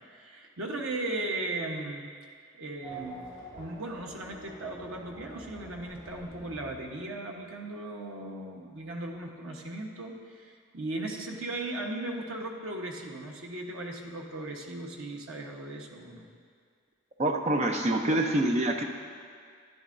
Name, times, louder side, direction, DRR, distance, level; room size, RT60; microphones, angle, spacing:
voice 1, 0.1-2.1 2.6-3.3 3.5-16.2, right 2 dB, 80° right, 1 dB, 1.0 m, -37 dB
Race car auto racing / Accelerating revving vroom, 2.8-7.5, right 1 dB, 15° right, 2.5 m, -47 dB
voice 2, 17.2-18.8, right 1 dB, 30° right, 3 dB, 0.6 m, -26 dB
12.0 x 10.0 x 2.6 m, 2.1 s
head